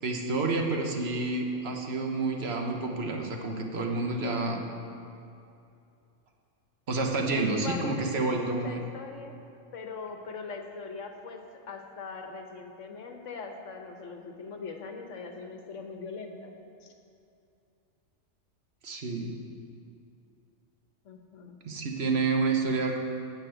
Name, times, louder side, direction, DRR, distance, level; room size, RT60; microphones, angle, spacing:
voice 1, 0.0-4.6 6.9-8.8 18.8-19.3 21.6-23.0, right 3 dB, 55° right, 2 dB, 1.4 m, -29 dB
voice 2, 7.3-9.3 9.7-11.4 11.7-16.5 16.8-16.9 21.0-21.6, left 4 dB, 70° left, 4 dB, 1.4 m, -41 dB
9.7 x 7.2 x 7.9 m, 2.6 s
omnidirectional pair, 1.4 m